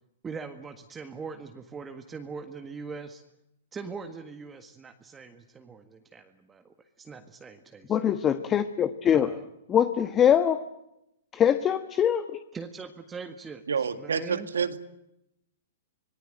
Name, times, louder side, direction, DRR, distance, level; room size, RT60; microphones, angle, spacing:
voice 1, 0.2-3.2 3.7-8.0 9.1-9.4 12.5-13.6 14.0-14.5, right 5 dB, 15° right, 6 dB, 1.7 m, -41 dB
voice 2, 7.9-9.3 9.7-10.7 11.3-12.4, left 9 dB, 25° left, 10 dB, 1.3 m, -23 dB
voice 3, 13.7-14.8, right 6 dB, 90° right, 10 dB, 2.0 m, -28 dB
25.5 x 19.0 x 9.2 m, 0.84 s
hypercardioid pair, 130°, 0 cm